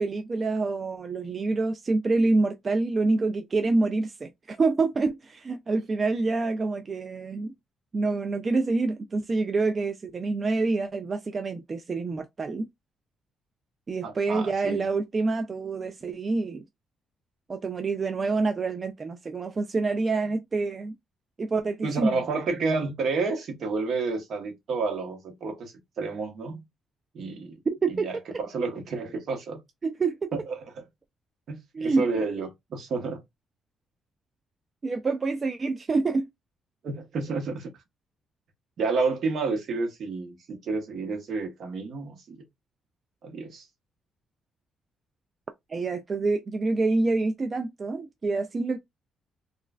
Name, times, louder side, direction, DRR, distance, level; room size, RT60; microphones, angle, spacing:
voice 1, 0.0-7.5 7.9-12.7 13.9-16.6 17.5-20.9 21.4-22.2 27.8-28.1 29.8-30.3 31.7-32.1 34.8-36.3 45.7-48.8, right 3 dB, 35° right, 0.3 m, -27 dB
voice 2, 14.0-14.8 21.8-26.6 27.1-27.6 27.9-29.6 30.3-30.8 31.5-33.2 36.8-37.7 38.8-42.4 43.2-43.7, right 4 dB, 60° right, 0.9 m, -30 dB
3.0 x 2.3 x 2.3 m
cardioid pair, 90°, 0 cm